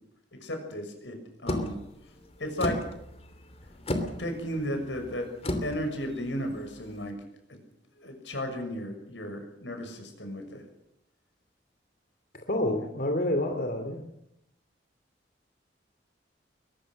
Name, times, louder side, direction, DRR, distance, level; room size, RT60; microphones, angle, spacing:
voice 1, 0.4-1.7 2.4-2.8 4.2-5.3 5.6-7.1 8.0-10.6, equal, 85° left, 5 dB, 6.6 m, -34 dB
sound 1, 1.5-7.1, left 1 dB, 35° left, 3.0 m, -35 dB
voice 2, 12.5-14.0, left 1 dB, 55° left, 4 dB, 2.7 m, -28 dB
23.0 x 20.5 x 6.6 m, 0.80 s
head